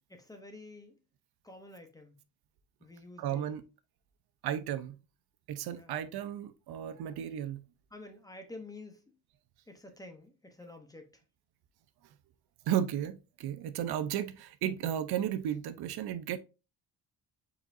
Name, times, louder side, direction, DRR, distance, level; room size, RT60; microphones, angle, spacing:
voice 1, 0.1-1.0 1.4-2.1 2.8-3.6 5.7-5.9 7.9-9.1 9.7-11.2, left 2 dB, 10° left, 0.7 m, -49 dB
voice 2, 3.2-3.6 4.4-5.0 5.5-7.6 12.7-16.4, right 10 dB, 75° right, 0.6 m, -34 dB
5.0 x 4.2 x 2.5 m
cardioid pair, 160°, 38 cm